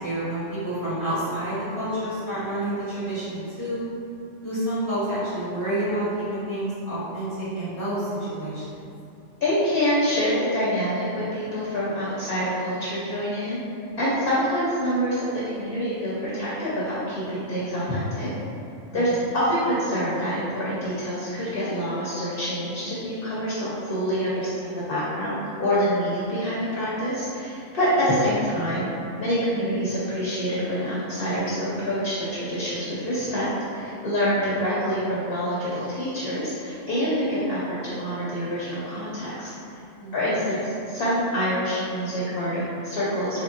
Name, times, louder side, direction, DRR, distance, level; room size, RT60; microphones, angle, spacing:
voice 1, 0.0-3.8 4.4-8.8 18.9-19.2 40.0-40.3, right 1 dB, 25° right, -14 dB, 1.2 m, -29 dB
voice 2, 9.4-13.6 14.0-18.3 18.9-19.1 19.3-28.9 29.2-33.5 33.7-39.5 40.1-43.4, equal, 55° left, -8 dB, 0.8 m, -26 dB
3.6 x 3.0 x 2.5 m, 2.6 s
omnidirectional pair, 1.3 m